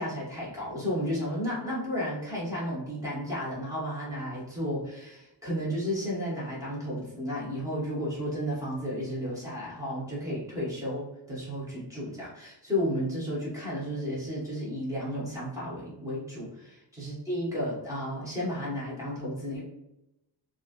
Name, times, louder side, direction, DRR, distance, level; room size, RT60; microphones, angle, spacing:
voice 1, 0.0-19.6, equal, 10° right, -8 dB, 0.9 m, -33 dB
3.0 x 2.4 x 2.5 m, 0.90 s
cardioid pair, 170°, 43 cm